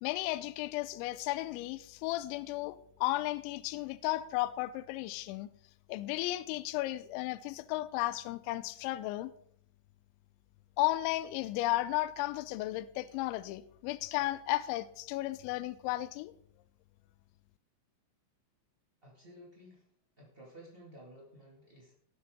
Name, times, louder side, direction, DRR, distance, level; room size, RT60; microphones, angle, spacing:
voice 1, 0.0-5.5 5.9-9.3 10.8-16.3, left 17 dB, 85° left, 2.9 m, -34 dB
voice 2, 19.0-19.9 20.2-21.9, equal, 75° right, 0.5 m, -54 dB
18.5 x 7.1 x 3.6 m
omnidirectional pair, 5.3 m